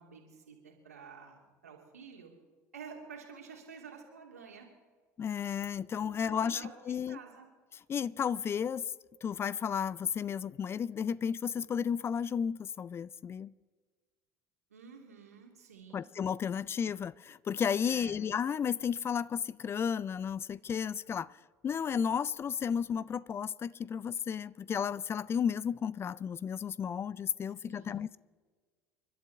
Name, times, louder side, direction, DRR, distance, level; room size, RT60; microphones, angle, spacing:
voice 1, 0.0-2.3 2.7-4.7 6.0-7.5 14.7-16.0 17.8-18.2 27.6-28.0, right 6 dB, 85° right, 1 dB, 2.8 m, -50 dB
voice 2, 5.2-6.6 6.9-7.2 7.9-8.9 9.2-13.5 15.9-21.4 21.6-28.2, left 7 dB, 30° left, 22 dB, 0.4 m, -33 dB
29.5 x 12.0 x 3.5 m, 1.5 s
figure-of-eight pair, 65°, 8 cm